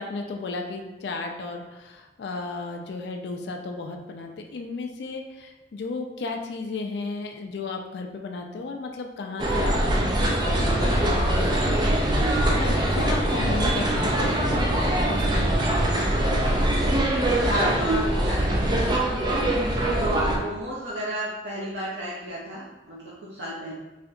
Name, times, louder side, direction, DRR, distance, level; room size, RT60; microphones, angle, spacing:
voice 1, 0.0-11.8 12.5-15.8, left 3 dB, 70° left, 3 dB, 0.4 m, -34 dB
sound 1, 9.4-20.4, right 1 dB, 25° right, 0.4 m, -23 dB
voice 2, 16.9-19.6 20.0-23.7, equal, 80° right, -6 dB, 0.5 m, -33 dB
3.2 x 2.7 x 2.5 m, 1.1 s
head